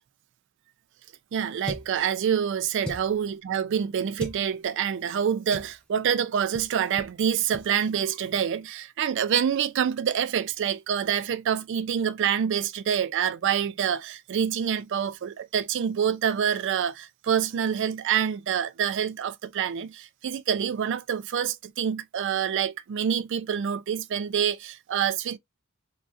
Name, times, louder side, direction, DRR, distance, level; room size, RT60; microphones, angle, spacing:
voice 1, 1.3-25.4, right 8 dB, 55° right, 0.3 m, -27 dB
sound 1, 1.6-2.0 2.8-3.2 4.1-4.4 5.5-5.8 6.5-6.7 7.0-7.1 7.5-7.7, equal, 5° left, 0.5 m, -37 dB
3.5 x 2.0 x 2.4 m
head